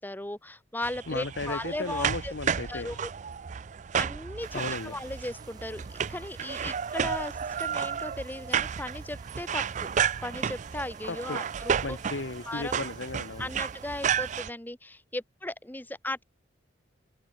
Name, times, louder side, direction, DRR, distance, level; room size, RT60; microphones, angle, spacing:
voice 1, 0.0-2.3 2.7-3.1 3.9-9.9 10.2-12.0 12.5-12.7 13.4-16.2, left 1 dB, 10° left, 1.0 m, -37 dB
sound 1, 0.8-14.5, right 7 dB, 40° right, 0.4 m, -32 dB
voice 2, 1.1-2.9 4.5-5.0 11.1-11.4 11.8-13.5, left 3 dB, 75° left, 1.1 m, -35 dB
sound 2, 4.4-14.4, right 3 dB, 20° right, 1.8 m, -55 dB
open air
head